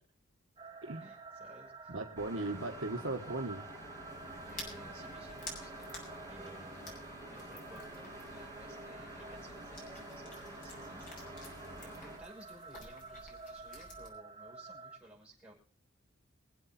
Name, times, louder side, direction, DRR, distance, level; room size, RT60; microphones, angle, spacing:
sound 1, 0.6-15.0, right 4 dB, 25° right, 1.9 m, -51 dB
voice 1, 1.0-2.4 4.4-5.9 6.2-11.3 11.8-15.5, right 1 dB, 5° right, -4 dB, 6.0 m, -57 dB
voice 2, 1.9-3.7, right 2 dB, 65° right, 3 dB, 1.5 m, -37 dB
sound 2, 2.2-12.2, equal, 15° left, 6.1 m, -49 dB
sound 3, 4.0-14.1, left 2 dB, 40° left, 5.6 m, -52 dB
24.0 x 8.1 x 4.4 m, 0.38 s
head